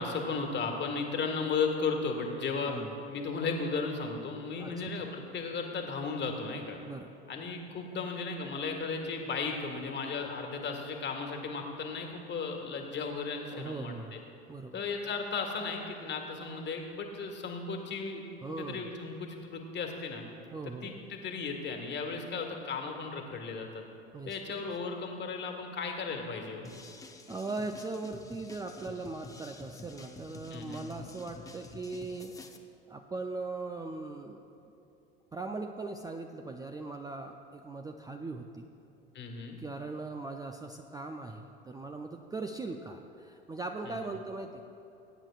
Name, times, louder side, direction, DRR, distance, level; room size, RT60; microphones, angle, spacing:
voice 1, 0.0-2.7 3.1-6.8 7.3-14.2 14.7-18.2 18.6-20.2 20.8-23.8 24.2-26.6 30.5-30.9 39.1-39.6 43.8-44.0, left 4 dB, 35° left, 3 dB, 1.7 m, -35 dB
voice 2, 6.8-7.1 13.5-14.2 14.5-14.8 18.4-18.9 20.5-21.0 24.1-24.4 27.3-32.3 32.9-34.5 35.3-38.7 39.6-44.7, right 3 dB, 10° right, 4 dB, 0.5 m, -39 dB
sound 1, 26.6-32.6, left 3 dB, 10° left, 0.8 m, -49 dB
20.5 x 8.8 x 2.5 m, 3.0 s
hypercardioid pair, 75°, 31 cm